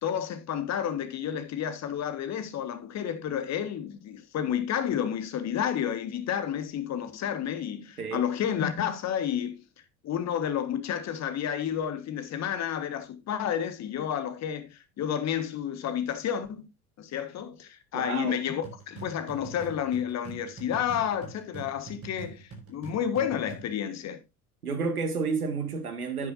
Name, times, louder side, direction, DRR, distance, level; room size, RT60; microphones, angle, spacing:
voice 1, 0.0-9.6 10.0-16.7 17.0-24.2, left 9 dB, 35° left, 1.6 m, -31 dB
voice 2, 17.9-18.4 24.6-26.3, right 5 dB, 75° right, 2.0 m, -30 dB
sound 1, 18.6-23.8, right 4 dB, 30° right, 4.9 m, -44 dB
10.0 x 9.6 x 2.7 m
figure-of-eight pair, 65°, 44 cm